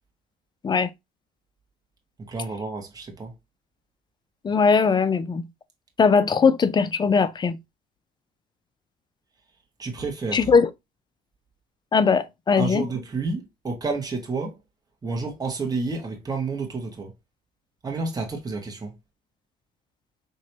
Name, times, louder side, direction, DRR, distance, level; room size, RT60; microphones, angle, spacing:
voice 1, 2.3-3.3 9.8-10.5 12.6-14.6 15.0-17.1 17.8-19.0, right 3 dB, 20° right, 1.4 m, -30 dB
voice 2, 4.4-5.5 6.0-7.6 10.3-10.7 11.9-12.9, left 5 dB, 25° left, 0.5 m, -20 dB
4.6 x 3.0 x 2.7 m
cardioid pair, 110°, 17 cm